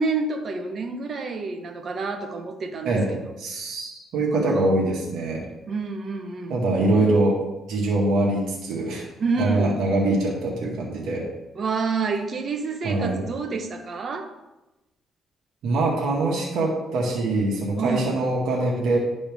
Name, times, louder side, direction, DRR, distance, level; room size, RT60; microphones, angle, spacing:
voice 1, 0.0-3.0 3.2-3.3 5.7-6.5 9.2-9.8 11.5-14.3 17.8-18.1, right 4 dB, 50° right, 5 dB, 1.1 m, -28 dB
voice 2, 3.4-5.4 6.5-7.4 7.7-9.1 9.4-11.3 12.8-13.2 15.6-19.0, right 2 dB, 80° right, -3 dB, 1.9 m, -23 dB
12.0 x 4.3 x 3.6 m, 1.0 s
cardioid pair, 90°, 0 cm